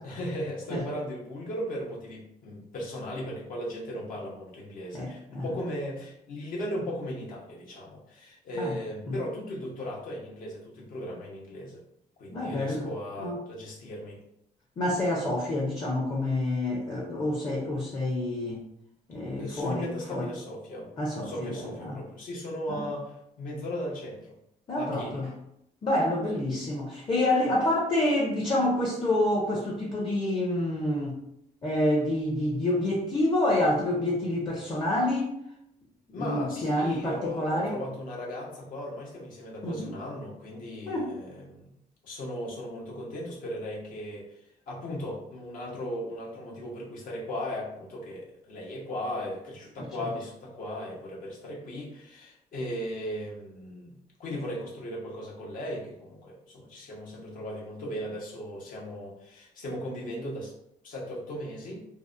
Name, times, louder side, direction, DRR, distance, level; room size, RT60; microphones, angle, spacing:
voice 1, 0.0-11.8 12.2-14.2 19.4-20.9 21.2-24.3 24.8-25.2 36.1-41.7 42.0-44.3 44.7-60.5 60.8-61.8, equal, 65° left, -3 dB, 0.8 m, -37 dB
voice 2, 4.9-5.4 8.6-8.7 9.1-9.2 12.3-12.9 13.2-13.4 14.8-18.6 19.1-20.3 21.0-22.0 22.7-22.8 24.7-25.3 25.8-31.2 31.6-35.3 36.1-37.8 39.6-39.9 40.9-41.1 50.0-50.1, left 1 dB, 30° left, -3 dB, 0.6 m, -28 dB
2.6 x 2.0 x 2.4 m, 0.76 s
cardioid pair, 100°, 15 cm